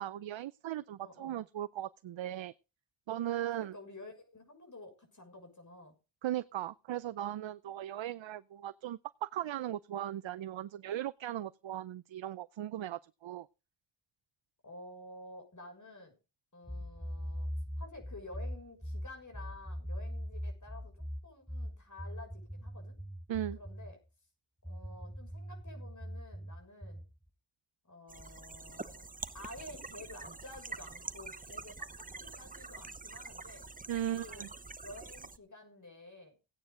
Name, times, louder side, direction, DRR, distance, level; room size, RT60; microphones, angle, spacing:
voice 1, 0.0-2.5 3.1-3.7 6.2-13.5 23.3-23.6 33.9-34.5, right 12 dB, 70° right, 0.6 m, -38 dB
voice 2, 1.0-1.4 3.5-5.9 14.6-16.1 16.5-17.5 17.8-23.0 23.5-24.0 24.6-27.0 27.8-29.1 29.3-33.7 34.1-34.5 34.8-36.4, left 2 dB, 40° left, 6.5 m, -51 dB
sound 1, 16.7-24.0 24.6-27.1, equal, ahead, 1.2 m, -41 dB
sound 2, 28.1-35.4, right 3 dB, 20° right, 0.7 m, -46 dB
16.5 x 9.4 x 3.8 m
cardioid pair, 60°, 47 cm